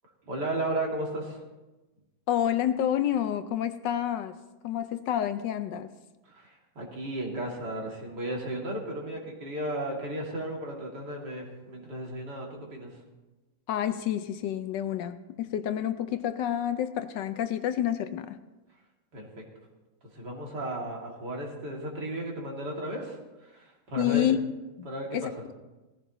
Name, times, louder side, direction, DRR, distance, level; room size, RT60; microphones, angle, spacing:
voice 1, 0.3-1.4 6.3-12.9 19.1-19.4 20.1-24.3 24.8-25.3, right 1 dB, 60° right, 2.9 m, -34 dB
voice 2, 2.3-4.3 4.6-5.9 13.7-18.4 24.0-24.4 24.8-25.5, left 11 dB, 75° left, 1.2 m, -29 dB
18.0 x 14.5 x 3.0 m
omnidirectional pair, 2.1 m